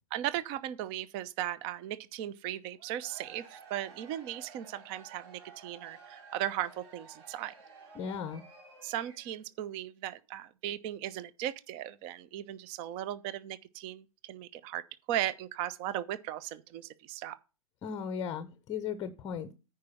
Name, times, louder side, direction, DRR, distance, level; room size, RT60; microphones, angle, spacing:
voice 1, 0.1-7.5 8.8-14.8 15.1-17.4, right 12 dB, 30° right, 0.7 m, -37 dB
Cheering / Crowd, 2.7-9.5, right 5 dB, 50° right, 3.7 m, -53 dB
voice 2, 7.9-8.4 17.8-19.5, left 7 dB, 20° left, 0.8 m, -36 dB
9.6 x 4.9 x 5.6 m
figure-of-eight pair, 115°, 18 cm